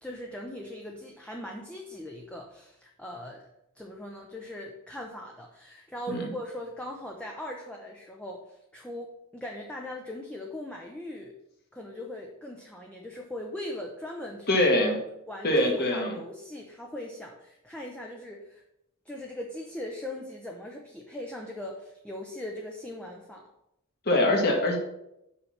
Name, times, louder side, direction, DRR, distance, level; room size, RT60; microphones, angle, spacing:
voice 1, 0.0-3.5 3.7-11.3 11.7-14.6 15.3-18.6 19.1-23.4, left 1 dB, 5° left, 0 dB, 0.7 m, -40 dB
voice 2, 14.5-15.0 15.4-16.1 24.0-24.8, left 1 dB, 50° left, 1 dB, 1.6 m, -23 dB
5.8 x 5.6 x 5.8 m, 0.84 s
head